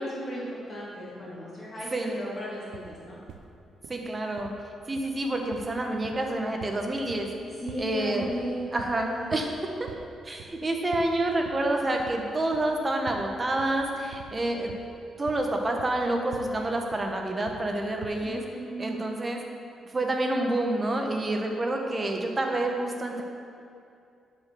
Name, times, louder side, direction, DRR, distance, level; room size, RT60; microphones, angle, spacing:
voice 1, 0.0-3.2 7.6-9.4 18.2-19.1, equal, 30° left, -6 dB, 2.3 m, -36 dB
sound 1, 2.7-3.5 3.8-4.0 4.4-4.6 5.0-5.2 5.5-7.4 7.7-7.9 8.2-8.5 8.8-9.0 9.3-9.6 9.9-10.1 10.4-10.6 10.9-11.7 12.0-12.3 12.5-12.8 13.1-13.3 13.6-16.6 16.9-17.7 18.0-18.3, right 7 dB, 85° right, 0.6 m, -45 dB
voice 2, 3.9-4.5 4.9-7.3 7.8-8.3 8.7-9.5 9.8-9.9 10.2-14.7 15.2-18.4 18.8-19.4 19.9-23.2, right 1 dB, 20° right, 2 dB, 1.1 m, -28 dB
11.0 x 5.3 x 6.7 m, 2.5 s
cardioid pair, 155°, 0 cm